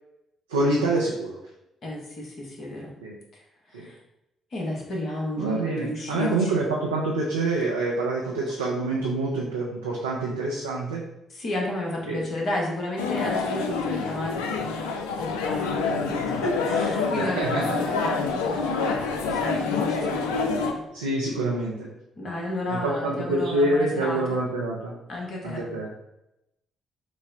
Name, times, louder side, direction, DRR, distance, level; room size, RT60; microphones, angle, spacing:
voice 1, 0.5-1.4 3.0-3.2 3.7-3.9 5.4-11.0 12.1-12.2 17.2-17.8 19.4-19.8 20.9-21.9 22.7-25.0 25.4-25.9, right 2 dB, 80° right, -3 dB, 0.4 m, -26 dB
voice 2, 1.8-2.9 3.3-3.4 3.7-4.0 4.5-6.6 11.3-20.8 22.2-24.4 25.1-25.8, left 1 dB, 50° left, -1 dB, 1.0 m, -32 dB
sound 1, 13.0-20.7, left 4 dB, 70° left, 0.3 m, -27 dB
6.1 x 2.0 x 2.6 m, 0.87 s
figure-of-eight pair, 40°, 0 cm